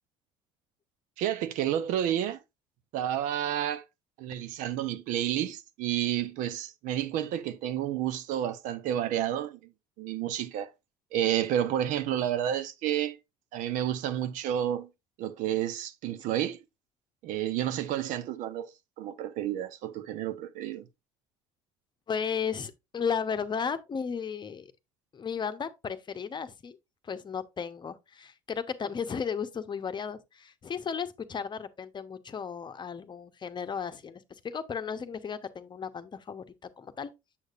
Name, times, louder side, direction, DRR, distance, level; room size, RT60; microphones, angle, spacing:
voice 1, 1.2-2.4 2.9-3.8 4.2-9.6 10.0-10.7 11.1-13.2 13.5-14.9 15.2-16.6 17.2-18.7 19.0-20.9, right 11 dB, 70° right, 0.7 m, -30 dB
voice 2, 22.1-24.7 25.1-26.8 27.0-36.4 36.8-37.1, left 6 dB, 35° left, 0.8 m, -34 dB
7.2 x 6.5 x 2.5 m
supercardioid pair, 75°, 14 cm